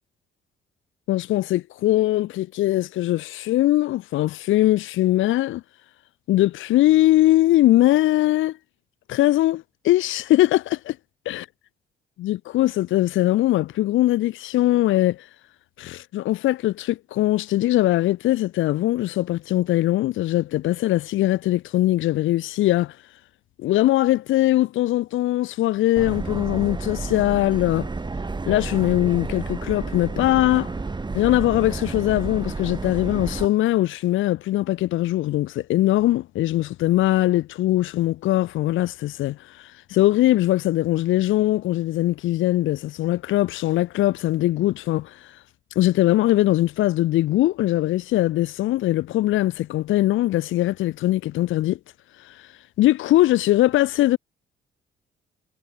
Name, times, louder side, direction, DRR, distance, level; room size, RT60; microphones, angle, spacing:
voice 1, 1.1-5.6 6.3-8.6 9.1-11.0 11.3-11.4 12.2-15.2 15.8-22.9 23.6-27.9 28.5-30.7 31.1-45.2 45.8-51.8 52.3-52.4 52.8-54.2, left 15 dB, 80° left, 0.8 m, -21 dB
Subway metro underground, 26.0-33.5, right 3 dB, 20° right, 2.2 m, -31 dB
cardioid pair, 90°, 20 cm